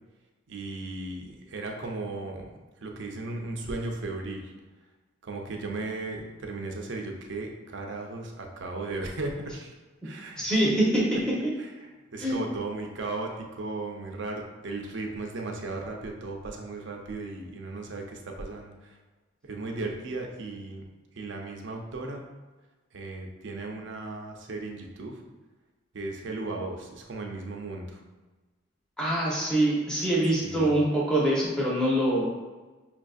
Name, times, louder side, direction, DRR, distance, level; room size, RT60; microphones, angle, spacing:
voice 1, 0.5-2.5 2.8-4.5 5.2-9.7 10.0-10.4 11.6-19.0 19.5-20.8 21.2-22.2 22.9-25.2 25.9-28.0 30.4-30.7, right 2 dB, 60° right, 2 dB, 0.5 m, -36 dB
voice 2, 10.4-11.1 12.2-12.4 29.0-32.2, right 1 dB, 5° left, -6 dB, 0.8 m, -24 dB
5.7 x 2.5 x 2.3 m, 1.2 s
head